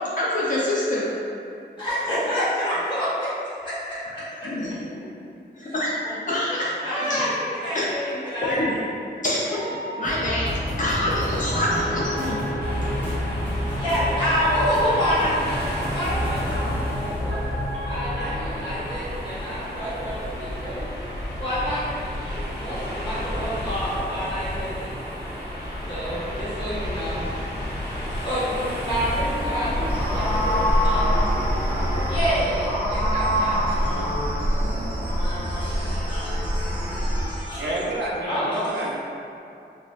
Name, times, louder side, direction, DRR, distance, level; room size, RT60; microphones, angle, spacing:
voice 1, 0.2-1.0 4.4-4.9 5.6-5.9 6.3-6.7 7.1-7.2 7.7-7.9 8.4-8.7 9.2-9.6 10.0-12.4, left 1 dB, 45° left, -6 dB, 0.4 m, -26 dB
voice 2, 1.8-3.3 3.6-4.8 6.0-6.4 6.8-8.8 9.5-9.8 13.6-17.4 17.9-20.8 21.4-24.9 25.8-27.3 28.2-30.4 30.6-31.1 32.1-37.8 38.3-38.9, equal, 25° left, -12 dB, 1.2 m, -28 dB
sound 1, 10.0-18.4, equal, 10° left, 1.1 m, -28 dB
sound 2, 12.6-32.4, equal, 65° left, 0.9 m, -32 dB
sound 3, 29.9-37.3, equal, 10° right, 0.6 m, -24 dB
voice 3, 37.6-38.9, right 1 dB, 75° right, -5 dB, 0.6 m, -29 dB
3.7 x 2.3 x 2.3 m, 2.6 s
wide cardioid pair, 140°, 18 cm